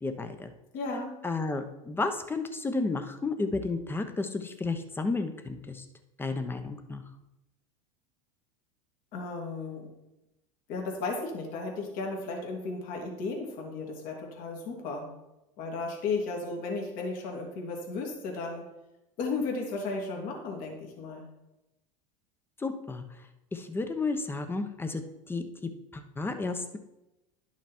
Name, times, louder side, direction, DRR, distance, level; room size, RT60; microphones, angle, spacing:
voice 1, 0.0-0.5 1.2-5.8 6.2-7.0 22.6-23.0 23.5-25.4 25.9-26.8, left 3 dB, 15° left, 8 dB, 1.0 m, -32 dB
voice 2, 0.7-1.2 9.1-9.9 10.7-15.1 15.6-18.7 19.2-21.3, left 3 dB, 55° left, 0 dB, 2.6 m, -34 dB
11.0 x 6.0 x 4.4 m, 0.94 s
supercardioid pair, 105°, 17 cm